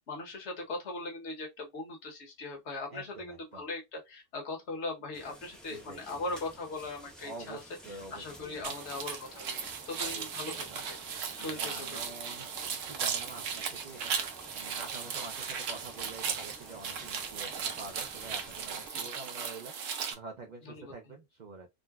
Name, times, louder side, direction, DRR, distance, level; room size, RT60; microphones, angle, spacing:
voice 1, 0.1-7.6 7.9-11.0 11.4-12.0 18.9-19.1 20.6-20.9, left 2 dB, 65° left, 1.3 m, -40 dB
voice 2, 2.9-3.6 5.7-6.4 7.2-8.7 10.0-10.8 11.3-14.2 14.5-21.7, right 3 dB, 50° right, 0.6 m, -47 dB
sound 1, 5.1-18.9, equal, ahead, 0.7 m, -53 dB
sound 2, 8.6-20.1, right 6 dB, 85° right, 1.0 m, -37 dB
3.7 x 2.1 x 2.3 m
omnidirectional pair, 1.3 m